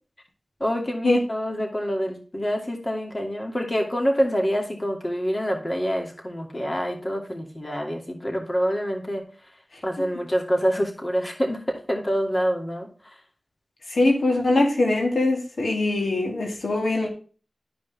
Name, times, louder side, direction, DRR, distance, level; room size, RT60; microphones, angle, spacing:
voice 1, 0.6-9.2 9.8-13.1, equal, 35° left, 2.6 m, -26 dB
voice 2, 13.9-17.1, left 2 dB, 90° left, 2.3 m, -22 dB
12.5 x 5.3 x 3.5 m
wide cardioid pair, 50°, 0 cm